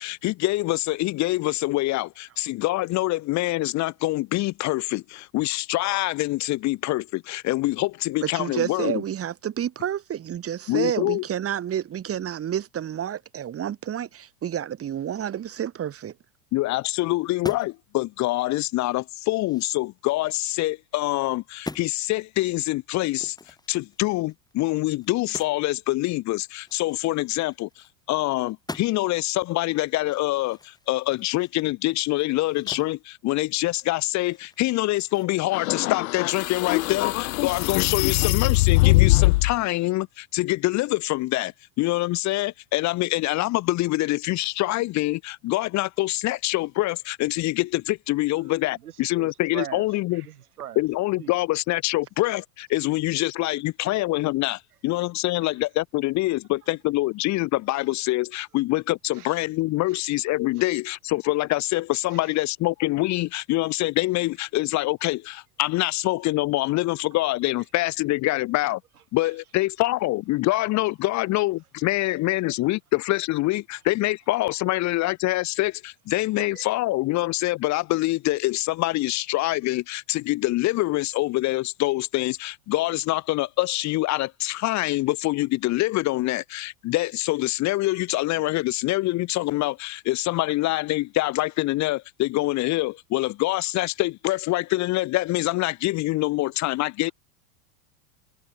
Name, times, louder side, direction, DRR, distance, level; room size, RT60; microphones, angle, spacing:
voice 1, 0.0-9.0 10.7-11.2 16.5-41.5 41.8-50.3 50.8-68.8 69.1-97.1, left 18 dB, 40° left, 1.0 m, -25 dB
voice 2, 8.2-16.2, right 10 dB, 30° right, 7.3 m, -29 dB
sound 1, 17.2-17.9 18.3-18.4 18.9-20.6 21.1-21.3 21.5-21.9 23.1-25.7 25.9-26.0 26.4-28.2 28.5-29.2 29.7-32.9 33.3-35.3, left 2 dB, 10° left, 7.8 m, -43 dB
sound 2, 35.5-39.6, left 21 dB, 70° left, 0.8 m, -21 dB
voice 3, 48.8-49.9 50.1-50.8 51.2-51.3 59.2-59.3 76.4-76.6, right 11 dB, 90° right, 6.6 m, -39 dB
hypercardioid pair, 110°, 44 cm